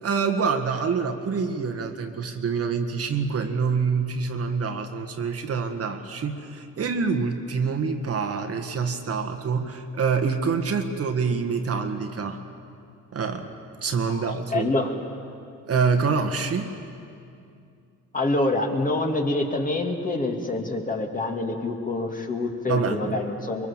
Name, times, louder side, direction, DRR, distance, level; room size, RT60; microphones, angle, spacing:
voice 1, 0.0-12.4 13.1-13.5 13.8-14.9 15.7-16.7 22.7-23.2, right 5 dB, 50° right, 5 dB, 1.8 m, -26 dB
voice 2, 14.1-14.9 18.1-23.7, left 2 dB, 25° left, 2 dB, 2.7 m, -26 dB
23.5 x 22.5 x 7.3 m, 2.4 s
cardioid pair, 90°, 30 cm